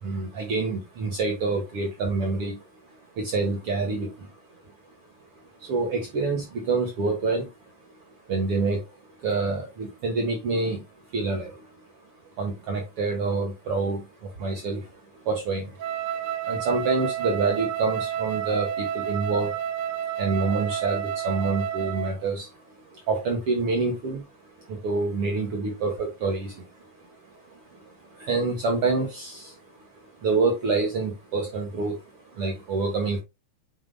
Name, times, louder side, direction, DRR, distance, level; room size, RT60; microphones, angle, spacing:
voice 1, 0.0-4.7 5.6-7.5 8.3-11.8 12.4-19.6 20.2-33.2, right 3 dB, 55° right, 2 dB, 2.1 m, -28 dB
Wind instrument woodwind instrument, 15.8-22.2, right 9 dB, 80° right, 1.2 m, -30 dB
9.3 x 4.8 x 2.2 m, 0.23 s
omnidirectional pair, 3.4 m